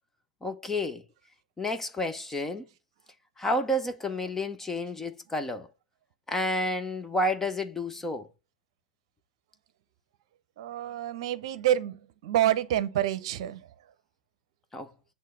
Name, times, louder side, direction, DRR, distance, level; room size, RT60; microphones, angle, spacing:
voice 1, 0.4-1.0 1.6-2.7 3.4-5.7 6.3-8.3 14.7-14.9, left 1 dB, 10° left, 0.6 m, -30 dB
voice 2, 10.6-13.6, right 12 dB, 45° right, 0.8 m, -27 dB
8.5 x 3.3 x 6.2 m
figure-of-eight pair, 110°, 4 cm